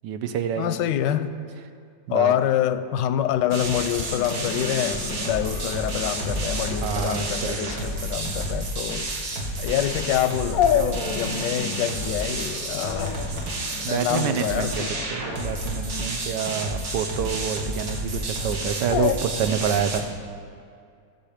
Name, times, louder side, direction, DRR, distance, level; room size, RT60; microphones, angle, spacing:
voice 1, 0.0-0.8 2.1-2.3 6.8-7.8 13.8-14.8 15.1-20.1, right 8 dB, 85° right, 9 dB, 1.3 m, -27 dB
voice 2, 0.6-1.4 2.1-9.1 9.6-13.2 13.9-15.1, left 11 dB, 85° left, 11 dB, 1.2 m, -26 dB
sound 1, 3.5-20.0, right 2 dB, 60° right, 1.7 m, -30 dB
Dog, 3.6-19.2, left 9 dB, 70° left, 0.9 m, -32 dB
sound 2, 6.3-13.3 13.8-13.9, left 1 dB, 35° right, 0.8 m, -40 dB
15.5 x 7.2 x 5.0 m, 2.3 s
omnidirectional pair, 1.8 m